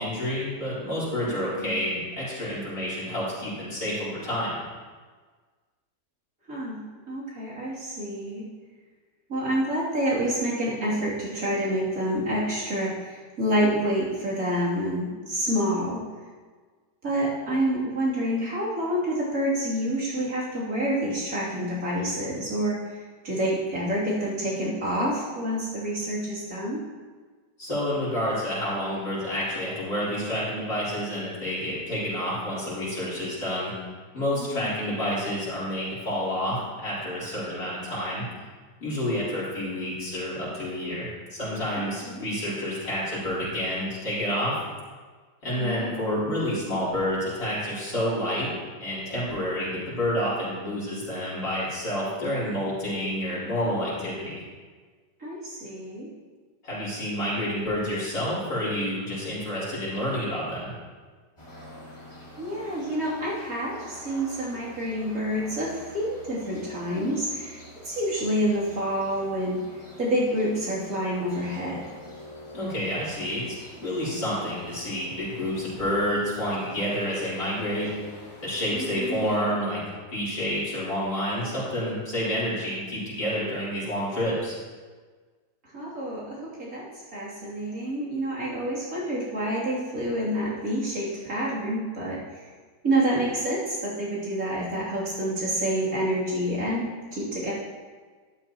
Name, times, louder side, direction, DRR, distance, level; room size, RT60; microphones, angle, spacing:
voice 1, 0.0-4.6 27.6-33.7 34.1-38.2 38.8-44.5 45.4-48.5 48.8-54.3 56.6-60.7 72.5-73.5 73.8-77.9 78.4-79.8 80.1-84.5, equal, 60° left, -9 dB, 4.6 m, -29 dB
voice 2, 1.3-1.8 6.5-6.8 7.1-8.5 9.3-16.0 17.0-26.8 34.3-34.9 41.8-42.3 45.5-46.3 55.2-56.1 62.4-69.6 70.0-71.8 78.7-79.4 85.6-86.9 87.1-92.4 92.8-97.5, right 1 dB, 55° right, -7 dB, 3.4 m, -28 dB
sound 1, 61.4-79.4, left 1 dB, 15° left, 2.0 m, -47 dB
12.5 x 12.0 x 3.0 m, 1.5 s
omnidirectional pair, 1.8 m